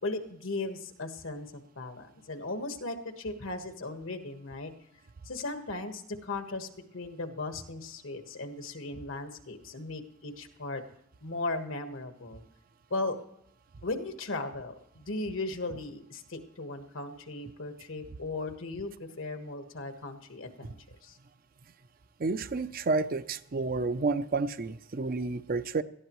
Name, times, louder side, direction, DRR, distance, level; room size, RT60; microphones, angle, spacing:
voice 1, 0.0-4.7 5.2-6.7 6.9-10.8 11.2-12.4 12.9-13.2 13.8-20.7 21.0-21.2, left 2 dB, 75° left, 6 dB, 1.4 m, -37 dB
voice 2, 22.2-25.8, right 3 dB, 45° right, 12 dB, 0.5 m, -30 dB
18.5 x 13.5 x 3.1 m, 0.74 s
head